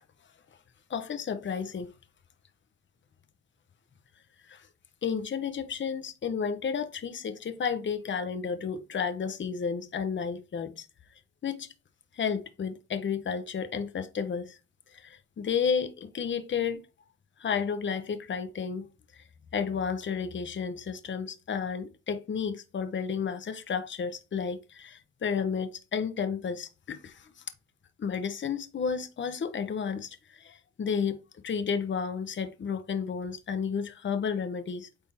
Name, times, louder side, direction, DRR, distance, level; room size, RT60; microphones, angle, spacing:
voice 1, 0.9-1.9 4.5-4.7 5.0-10.8 11.4-11.7 12.1-14.6 14.9-16.8 17.4-18.9 19.1-19.2 19.5-27.3 28.0-31.2 31.4-34.9, left 6 dB, 40° left, 1.0 m, -32 dB
8.8 x 3.7 x 3.5 m
cardioid pair, 90°, 30 cm